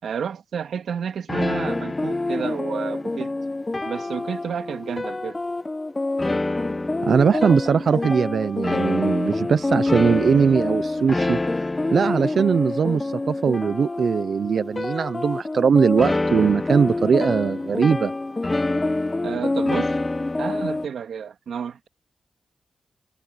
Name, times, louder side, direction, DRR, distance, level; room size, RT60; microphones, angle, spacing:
voice 1, 0.0-3.3 3.8-5.4 7.3-8.2 19.2-20.0 20.4-21.9, right 7 dB, 90° right, 2.7 m, -31 dB
sound 1, 1.3-20.9, left 2 dB, 25° left, 1.0 m, -26 dB
voice 2, 7.1-11.7 11.9-18.1, right 6 dB, 70° right, 0.7 m, -20 dB
cardioid pair, 75°, 0 cm